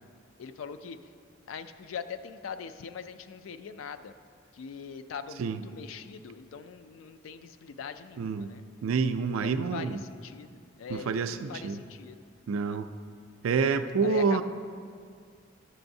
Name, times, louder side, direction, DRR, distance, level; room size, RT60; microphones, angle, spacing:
voice 1, 0.4-1.0 1.5-4.1 4.5-8.6 9.4-12.2 12.6-12.8 14.0-14.4, left 6 dB, 75° left, 9 dB, 0.4 m, -42 dB
voice 2, 8.2-8.5 8.8-10.0 10.9-11.8 12.5-12.9 13.4-14.4, right 5 dB, 85° right, 10 dB, 0.4 m, -28 dB
11.0 x 6.8 x 2.7 m, 2.2 s
head